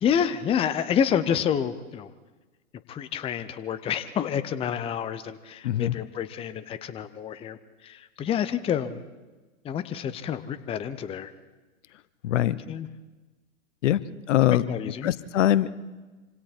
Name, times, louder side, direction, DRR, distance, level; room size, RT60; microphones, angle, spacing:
voice 1, 0.0-2.1 2.9-9.0 9.6-11.3 12.7-12.9 14.4-15.1, left 8 dB, 15° left, 12 dB, 0.7 m, -28 dB
voice 2, 5.6-6.0 12.2-12.6 13.8-14.6 15.0-15.7, left 12 dB, 60° left, 16 dB, 1.0 m, -23 dB
26.5 x 25.5 x 4.4 m, 1.2 s
hypercardioid pair, 120°, 41 cm